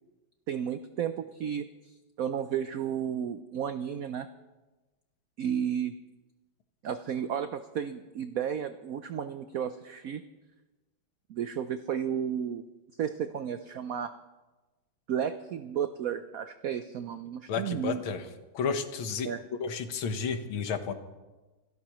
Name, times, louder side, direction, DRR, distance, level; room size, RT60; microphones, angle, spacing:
voice 1, 0.5-4.3 5.4-5.9 6.8-10.2 11.3-12.6 13.0-14.1 15.1-18.0 19.2-19.4, right 8 dB, 85° right, 10 dB, 0.7 m, -33 dB
voice 2, 17.5-18.2 18.5-19.3 19.6-20.9, left 6 dB, 85° left, 8 dB, 2.0 m, -31 dB
27.5 x 13.5 x 3.1 m, 1.2 s
omnidirectional pair, 2.2 m